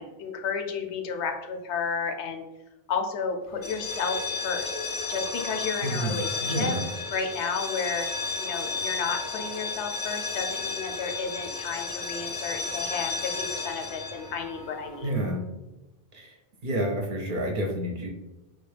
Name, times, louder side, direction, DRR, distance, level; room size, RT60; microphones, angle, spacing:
voice 1, 0.0-2.5 2.9-4.2 4.4-4.8 5.1-6.7 7.1-8.1 8.4-15.1, left 5 dB, 80° left, 4 dB, 0.9 m, -32 dB
sound 1, 3.6-15.3, left 4 dB, 40° left, 0.5 m, -33 dB
voice 2, 5.8-6.8 15.0-15.4 16.1-16.3 16.6-18.1, right 1 dB, 55° right, 1 dB, 0.7 m, -29 dB
4.0 x 2.2 x 3.2 m, 1.0 s
omnidirectional pair, 1.1 m